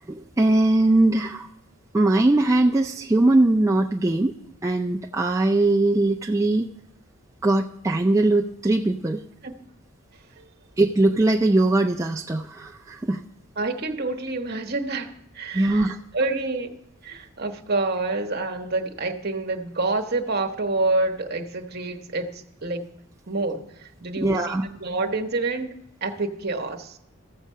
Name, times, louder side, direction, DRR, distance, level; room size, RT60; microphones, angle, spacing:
voice 1, 0.1-1.5 1.9-4.3 4.6-6.7 7.4-9.2 10.8-13.2 15.5-16.0 24.2-24.6, right 2 dB, 15° right, 1 dB, 0.3 m, -21 dB
voice 2, 13.6-16.8 17.0-22.9 23.3-25.7 26.0-27.0, right 3 dB, 50° right, 4 dB, 1.0 m, -28 dB
14.0 x 7.3 x 5.5 m, 0.84 s
head